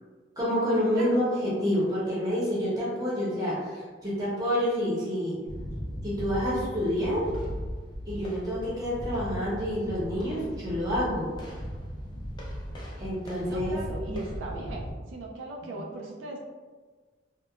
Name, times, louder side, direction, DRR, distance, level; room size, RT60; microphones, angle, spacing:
voice 1, 0.4-5.3 6.0-7.3 8.1-11.3 13.0-13.8 15.7-15.8, equal, 20° right, -7 dB, 0.8 m, -28 dB
sound 1, 5.5-14.9, equal, 25° left, 0.4 m, -37 dB
voice 2, 13.5-16.4, right 2 dB, 80° right, -1 dB, 0.3 m, -38 dB
2.8 x 2.1 x 2.3 m, 1.4 s
head